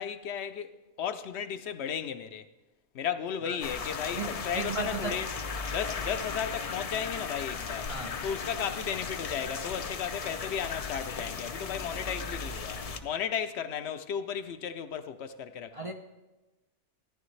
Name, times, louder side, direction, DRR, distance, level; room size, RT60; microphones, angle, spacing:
voice 1, 0.0-2.4 2.9-5.3 5.7-7.9 8.2-15.9, left 8 dB, 70° left, 0.9 m, -35 dB
sound 1, 3.6-13.0, left 5 dB, 45° left, 0.5 m, -36 dB
voice 2, 4.2-5.2 7.9-8.2 15.7-15.9, right 4 dB, 45° right, 0.4 m, -36 dB
14.0 x 10.5 x 3.2 m
omnidirectional pair, 1.2 m